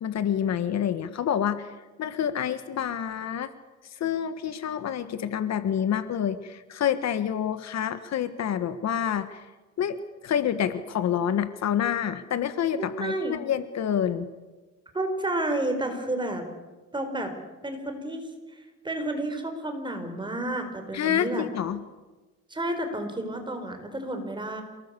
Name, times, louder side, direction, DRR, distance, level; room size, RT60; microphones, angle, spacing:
voice 1, 0.0-3.5 3.8-9.5 9.8-14.3 20.9-21.8, left 9 dB, 55° left, 12 dB, 1.5 m, -28 dB
voice 2, 12.8-13.3 14.9-16.4 16.9-17.3 17.6-18.3 18.8-21.4 22.5-24.6, right 1 dB, 15° right, 6 dB, 4.8 m, -30 dB
28.0 x 19.0 x 8.3 m, 1.2 s
cardioid pair, 130°, 31 cm